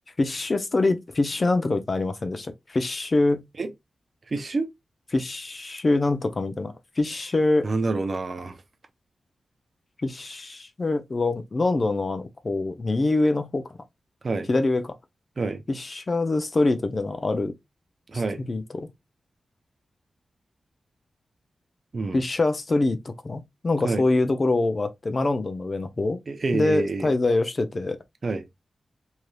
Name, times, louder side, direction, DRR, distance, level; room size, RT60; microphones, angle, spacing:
voice 1, 0.2-3.4 5.1-7.7 10.0-13.7 14.5-14.9 15.7-17.5 18.5-18.9 22.1-26.2 26.5-28.0, left 2 dB, 35° left, 0.5 m, -24 dB
voice 2, 4.3-4.7 7.6-8.6 14.2-14.5 15.4-15.6 18.1-18.4 21.9-22.2 23.8-24.0 26.3-27.1 28.2-28.4, right 3 dB, 45° right, 0.5 m, -27 dB
3.2 x 2.7 x 2.2 m
wide cardioid pair, 120°, 0 cm